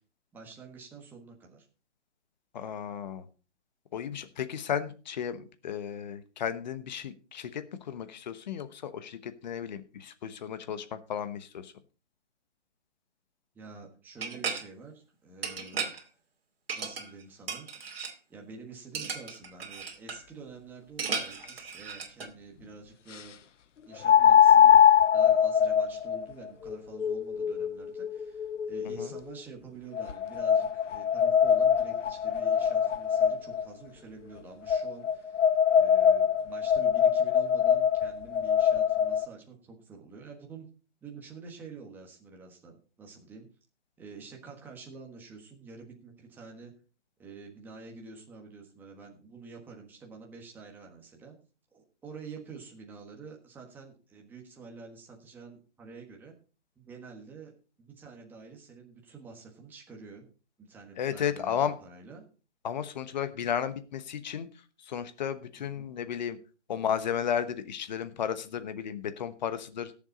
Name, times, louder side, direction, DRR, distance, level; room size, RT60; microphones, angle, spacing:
voice 1, 0.3-1.7 13.5-15.9 16.7-17.7 18.3-23.4 23.8-35.4 35.7-40.7 41.0-43.5 44.0-46.7 47.2-51.3 51.7-56.3 56.7-57.5 57.8-60.3 60.6-62.2 65.6-65.9, right 4 dB, 5° right, 0 dB, 1.4 m, -48 dB
voice 2, 2.5-3.3 3.9-11.7 29.0-29.1 61.0-61.7 62.6-64.5 64.8-66.4 66.7-69.9, left 8 dB, 40° left, 11 dB, 1.1 m, -34 dB
sound 1, 14.2-14.6 15.4-16.0 16.7-17.2 17.5-18.1 18.9-20.2 21.0-22.3, right 5 dB, 55° right, 2.6 m, -35 dB
sound 2, 21.4-21.5 24.0-29.2 29.9-33.6 34.7-39.3, left 8 dB, 90° left, 0.7 m, -23 dB
17.5 x 7.3 x 4.1 m, 0.36 s
hypercardioid pair, 160°, 35 cm